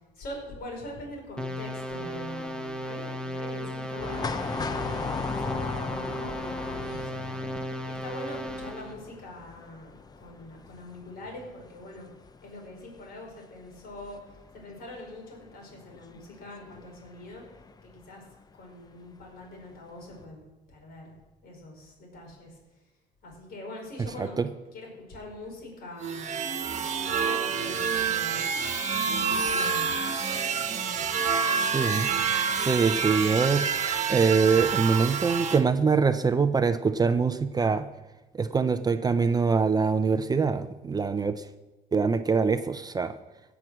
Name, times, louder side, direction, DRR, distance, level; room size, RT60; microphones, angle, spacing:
voice 1, 0.1-5.0 5.4-7.4 7.8-12.1 12.4-17.5 17.8-18.2 18.6-20.4 20.7-21.1 21.4-22.6 23.2-24.4 24.7-28.4 29.1-30.0 30.7-31.0 34.6-34.7, left 1 dB, 65° left, 0 dB, 4.8 m, -43 dB
sound 1, 1.4-8.9, equal, 5° left, 1.2 m, -35 dB
sound 2, 4.0-18.0 18.3-18.4 19.4-19.8 20.1-20.2, left 4 dB, 25° left, 0.6 m, -38 dB
sound 3, 26.0-35.6, right 6 dB, 45° right, 1.3 m, -28 dB
voice 2, 31.6-32.1 32.6-33.6 34.1-37.9 38.3-41.4 41.9-43.1, right 5 dB, 25° right, 10 dB, 0.5 m, -24 dB
16.5 x 6.1 x 6.2 m, 1.1 s
cardioid pair, 110°, 17 cm